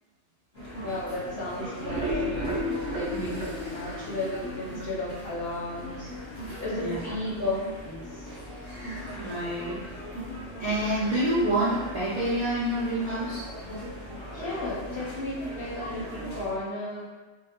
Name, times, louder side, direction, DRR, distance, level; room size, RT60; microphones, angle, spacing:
sound 1, 0.5-16.5, left 1 dB, 15° left, 0.7 m, -39 dB
voice 1, 0.8-6.1 6.6-8.1 14.3-17.0, left 1 dB, 60° left, -6 dB, 0.7 m, -34 dB
sound 2, 1.7-4.9 5.3-5.4 5.7-5.8 6.2-6.3, equal, 80° right, 0.9 m, -32 dB
voice 2, 9.2-9.8 10.6-13.4, right 1 dB, 60° right, -9 dB, 0.4 m, -27 dB
2.1 x 2.1 x 2.9 m, 1.3 s
omnidirectional pair, 1.2 m